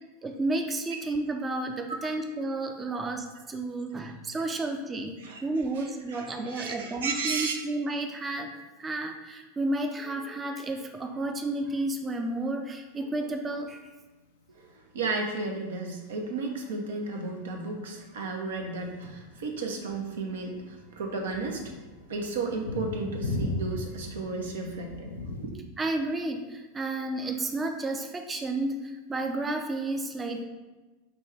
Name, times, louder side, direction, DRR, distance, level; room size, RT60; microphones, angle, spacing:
voice 1, 0.2-5.1 5.4-8.5 8.8-13.9 25.8-30.5, right 2 dB, 20° right, 4 dB, 0.4 m, -31 dB
voice 2, 5.7-7.5 14.5-21.7 22.1-25.5, right 3 dB, 75° right, 2 dB, 0.6 m, -34 dB
sound 1, 17.1-25.5, left 2 dB, 80° left, 0.4 m, -38 dB
5.2 x 2.3 x 3.3 m, 1.2 s
hypercardioid pair, 90°, 0 cm